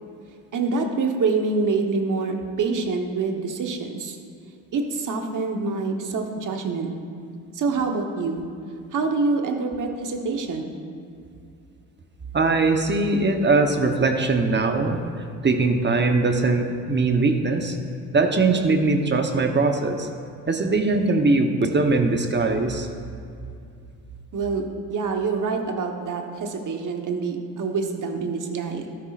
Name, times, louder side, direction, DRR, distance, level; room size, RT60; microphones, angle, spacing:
voice 1, 0.5-4.2 4.7-6.9 7.5-8.5 8.9-10.7 24.3-28.9, right 4 dB, 55° right, 3 dB, 1.3 m, -26 dB
voice 2, 12.3-15.0 15.4-17.8 18.1-20.1 20.5-22.9, right 3 dB, 30° right, 5 dB, 1.0 m, -21 dB
12.5 x 10.5 x 2.5 m, 2.5 s
supercardioid pair, 65°, 38 cm